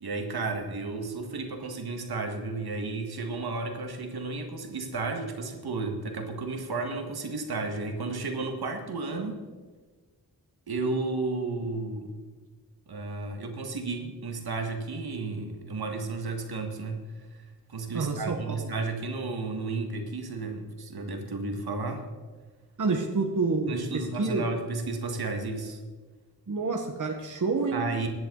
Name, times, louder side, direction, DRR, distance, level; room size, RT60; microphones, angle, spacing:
voice 1, 0.0-9.4 10.7-12.1 12.9-17.0 17.7-22.0 23.7-25.8 27.7-28.1, right 3 dB, 75° right, 5 dB, 1.8 m, -33 dB
voice 2, 17.9-18.7 22.8-24.4 26.5-27.8, right 4 dB, 55° right, 2 dB, 1.4 m, -28 dB
16.0 x 10.5 x 4.0 m, 1.4 s
wide cardioid pair, 85°, 38 cm